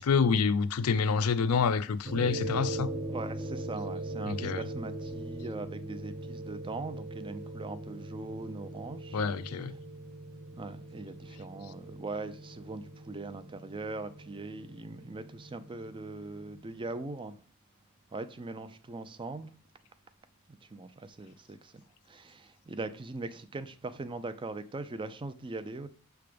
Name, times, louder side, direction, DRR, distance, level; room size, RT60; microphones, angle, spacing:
voice 1, 0.0-2.9 4.3-4.6 9.1-9.7, left 5 dB, 70° left, 0.4 m, -27 dB
sound 1, 2.1-16.6, right 2 dB, 40° right, 1.2 m, -40 dB
voice 2, 3.1-9.2 10.5-17.4 18.1-19.5 20.5-21.7 22.1-25.9, right 3 dB, 20° right, 0.4 m, -40 dB
6.7 x 3.5 x 5.1 m
head